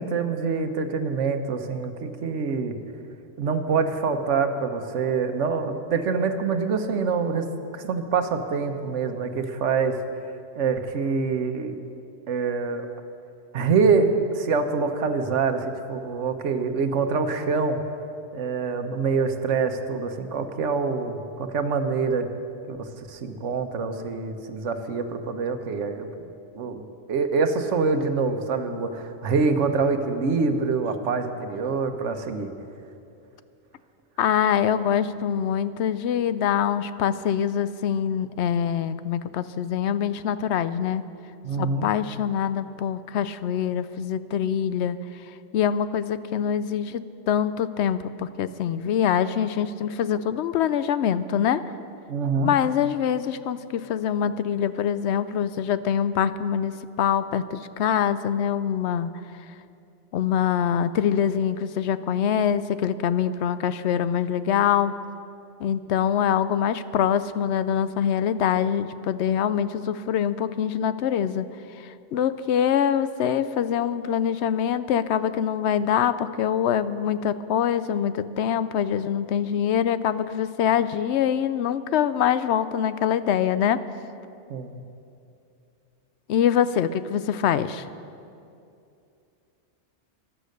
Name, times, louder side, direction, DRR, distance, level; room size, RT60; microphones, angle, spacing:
voice 1, 0.0-2.7 3.4-7.4 7.7-9.9 10.5-11.8 12.3-12.9 13.5-14.1 14.3-17.8 18.3-22.3 22.7-26.3 26.5-26.8 27.1-32.5 41.4-41.9 50.1-50.2 52.1-52.5 84.5-84.8, right 5 dB, 85° right, 7 dB, 1.2 m, -25 dB
voice 2, 34.2-41.0 41.6-45.0 45.5-51.6 52.4-59.1 60.1-64.9 65.6-71.5 71.8-83.8 86.3-87.8, left 9 dB, 70° left, 14 dB, 0.8 m, -24 dB
14.5 x 11.5 x 6.5 m, 2.6 s
omnidirectional pair, 1.2 m